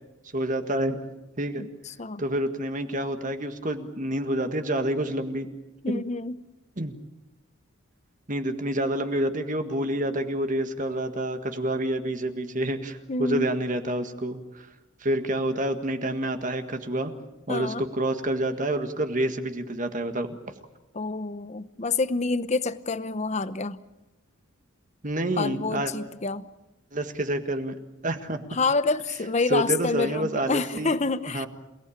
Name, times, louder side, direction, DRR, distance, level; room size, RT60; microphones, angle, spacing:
voice 1, 0.3-1.0 1.4-1.7 2.2-5.5 5.9-6.0 6.8-6.9 8.3-14.7 15.0-17.1 17.5-20.4 25.0-25.9 26.9-27.7 28.0-28.4 29.5-31.0 31.3-31.5, right 1 dB, 40° right, 7 dB, 1.7 m, -28 dB
voice 2, 1.6-2.2 5.8-6.4 13.1-13.5 17.5-17.8 20.9-23.8 25.4-26.5 28.5-31.5, left 3 dB, 35° left, 14 dB, 0.9 m, -28 dB
28.5 x 18.0 x 8.7 m, 1.0 s
head